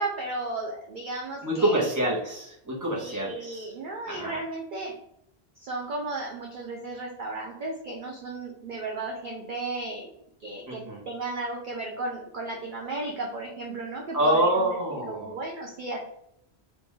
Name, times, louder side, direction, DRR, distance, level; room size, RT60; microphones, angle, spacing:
voice 1, 0.0-1.9 2.9-4.9 5.6-10.1 10.4-14.5 14.9-16.0, right 2 dB, 55° right, -1 dB, 0.7 m, -34 dB
voice 2, 1.4-3.7 4.1-4.4 10.7-11.0 14.1-15.3, right 1 dB, 20° right, -4 dB, 1.0 m, -26 dB
3.6 x 2.5 x 3.1 m, 0.75 s
omnidirectional pair, 1.1 m